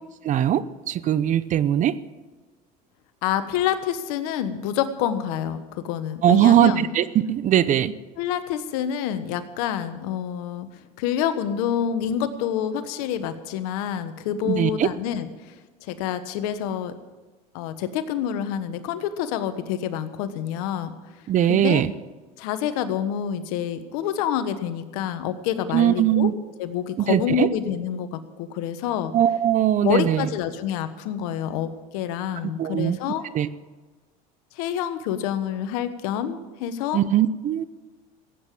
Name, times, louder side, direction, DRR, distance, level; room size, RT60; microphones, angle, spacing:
voice 1, 0.2-2.0 6.2-7.9 14.4-14.9 21.3-21.9 25.7-26.3 27.0-27.5 29.1-30.3 32.6-33.0 33.3-33.5 36.9-37.6, right 11 dB, 40° right, 17 dB, 0.7 m, -20 dB
voice 2, 3.2-6.9 8.2-10.7 11.0-16.9 17.5-20.9 21.5-21.8 22.4-26.3 26.6-29.1 29.8-33.2 34.5-37.0, left 9 dB, 80° left, 11 dB, 1.3 m, -27 dB
16.0 x 8.7 x 7.6 m, 1.3 s
supercardioid pair, 110°, 19 cm